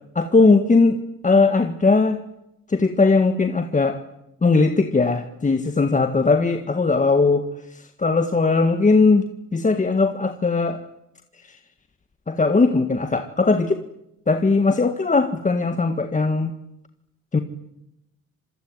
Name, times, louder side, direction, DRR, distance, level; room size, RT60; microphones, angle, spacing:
voice 1, 0.2-2.2 2.7-4.0 4.4-9.2 9.5-10.8 11.5-11.6 12.3-13.8 14.3-16.5 17.3-17.4, left 3 dB, 25° left, 8 dB, 1.7 m, -19 dB
26.0 x 22.0 x 9.7 m, 0.85 s
cardioid pair, 90°, 30 cm